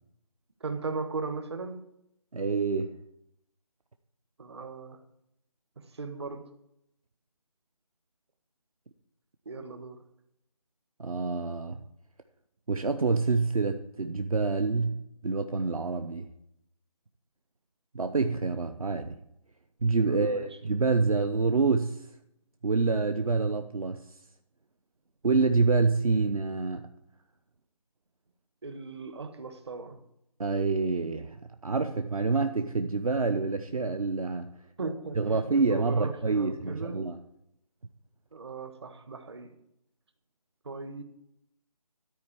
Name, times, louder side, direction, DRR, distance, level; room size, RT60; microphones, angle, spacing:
voice 1, 0.6-1.9 4.4-5.0 5.8-6.4 9.4-10.0 20.0-20.5 28.6-30.0 34.8-37.0 38.3-39.5 40.6-41.0, right 4 dB, 45° right, 1.4 m, -37 dB
voice 2, 2.3-3.0 11.0-11.8 12.7-15.0 15.2-16.3 17.9-19.2 19.8-22.1 22.6-24.0 25.2-26.9 30.4-31.4 31.6-34.5 35.2-37.2, right 4 dB, 65° right, 0.9 m, -27 dB
13.0 x 4.6 x 8.6 m
figure-of-eight pair, 165°, 19 cm